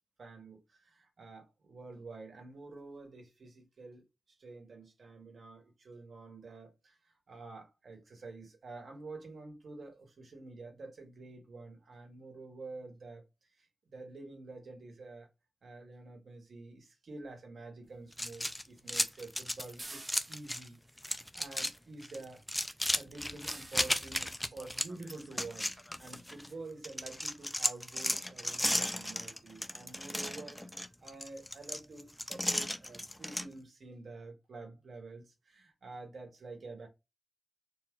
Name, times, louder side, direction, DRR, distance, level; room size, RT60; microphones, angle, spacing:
voice 1, 0.2-4.1 4.4-13.2 13.6-15.3 15.6-20.8 21.3-22.4 22.9-30.7 31.0-36.9, right 3 dB, 75° right, 2.0 m, -48 dB
sound 1, 18.1-20.7 21.0-21.7 22.0-26.5 26.8-33.5, left 1 dB, 10° left, 0.5 m, -35 dB
sound 2, 19.8-20.8 23.5-24.2 25.7-25.8 26.4-26.5 26.8-26.9 27.2-27.3, right 2 dB, 30° right, 1.1 m, -49 dB
4.5 x 2.5 x 3.8 m
wide cardioid pair, 115°, 0 cm